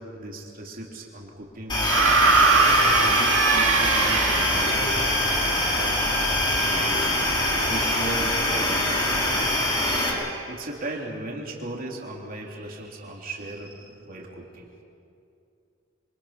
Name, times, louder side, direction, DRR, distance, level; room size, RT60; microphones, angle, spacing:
voice 1, 0.0-2.3 3.0-5.0 5.2-7.3 7.7-9.0 9.9-10.1 10.5-14.7, right 2 dB, 45° right, -1 dB, 3.3 m, -37 dB
sound 1, 1.7-10.1, left 1 dB, 25° left, 5.2 m, -23 dB
sound 2, 1.8-4.9 6.1-6.2, right 4 dB, 85° right, 1.8 m, -21 dB
27.0 x 24.5 x 5.9 m, 2.7 s
head